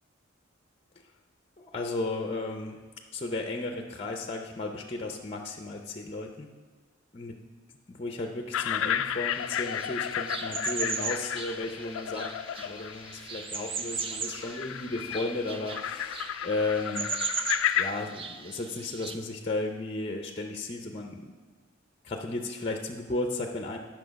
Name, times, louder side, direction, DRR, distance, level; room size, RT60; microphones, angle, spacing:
voice 1, 1.6-2.8 3.1-6.5 7.1-7.3 7.9-17.1 17.8-21.3 22.0-23.8, left 2 dB, 30° left, 3 dB, 0.6 m, -34 dB
sound 1, 8.5-17.9, left 10 dB, 75° left, 0.3 m, -33 dB
sound 2, 9.3-19.2, right 5 dB, 25° right, 0.4 m, -38 dB
10.0 x 6.1 x 5.1 m, 1.4 s
head